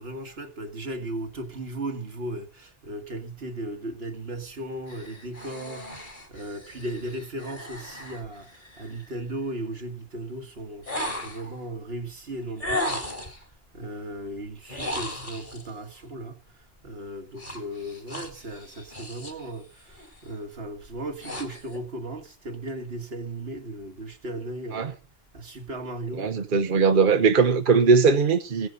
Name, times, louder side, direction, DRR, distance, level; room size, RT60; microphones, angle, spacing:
voice 1, 0.0-13.3 13.7-24.9 25.3-26.3, right 1 dB, 75° right, 2.2 m, -36 dB
sound 1, 4.9-9.1 10.8-11.6 12.6-13.4 14.6-15.7 17.4-19.5 19.8-20.2 20.8-21.8, left 1 dB, 50° left, 3.6 m, -36 dB
voice 2, 26.2-28.7, right 5 dB, 55° right, 1.1 m, -20 dB
16.5 x 11.0 x 5.3 m
omnidirectional pair, 1.0 m